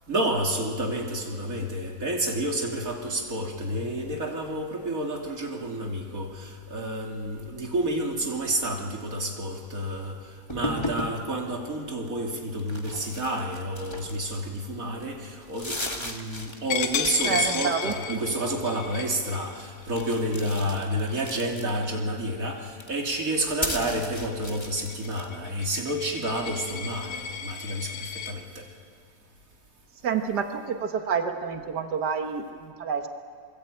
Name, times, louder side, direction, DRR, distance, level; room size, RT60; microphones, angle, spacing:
voice 1, 0.1-10.2 10.5-28.6, right 1 dB, 25° right, 0 dB, 2.9 m, -30 dB
sound 1, 10.5-11.2 12.6-14.6 15.0-15.1 15.4-17.6 17.8-18.3 19.9-22.0 22.7-25.3, left 1 dB, 25° left, 0.6 m, -36 dB
Coin (dropping), 16.7-22.1 22.6-22.8 23.2-28.3, left 7 dB, 70° left, 2.9 m, -34 dB
voice 2, 17.2-18.2 30.0-33.1, right 6 dB, 70° right, 5 dB, 0.9 m, -28 dB
26.5 x 22.5 x 8.7 m, 2.2 s
omnidirectional pair, 3.8 m